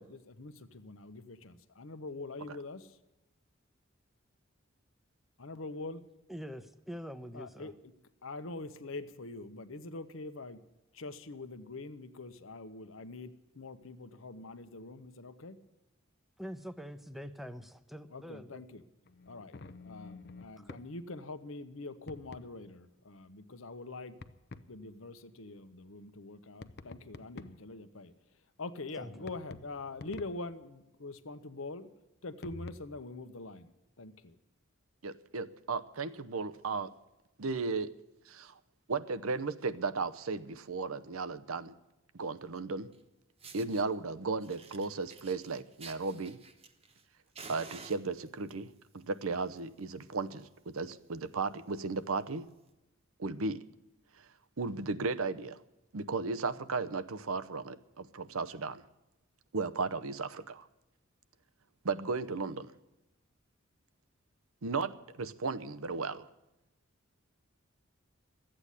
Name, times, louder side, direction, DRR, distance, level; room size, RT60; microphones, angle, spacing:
voice 1, 0.0-3.0 5.4-6.0 7.3-7.7 8.2-10.6 10.9-15.6 18.1-18.8 19.3-19.6 19.8-24.2 24.7-28.1 28.6-31.9 32.2-34.4, left 2 dB, 75° left, 1.0 m, -44 dB
voice 2, 6.3-7.7 16.4-18.6 20.6-20.8 29.0-29.3, equal, ahead, 0.7 m, -44 dB
sound 1, 19.0-20.9 22.1-22.5 24.2-24.7 26.6-27.7 29.2-30.5 32.4-32.7, left 3 dB, 50° left, 0.6 m, -48 dB
voice 3, 35.0-36.9 37.4-37.9 38.3-38.6 38.9-41.7 42.1-42.9 43.5-46.4 47.5-52.5 53.2-53.6 54.6-55.6 55.9-58.8 59.5-60.7 61.8-62.7 64.6-66.3, right 4 dB, 85° right, 0.8 m, -35 dB
Fire, 42.9-43.0 43.4-43.8 44.4-47.0 47.3-48.5 49.3-49.6 49.9-50.0 50.4-50.5 50.7-51.0 51.5-51.6 52.5-52.6, right 4 dB, 30° right, 1.1 m, -51 dB
13.5 x 8.9 x 9.8 m
head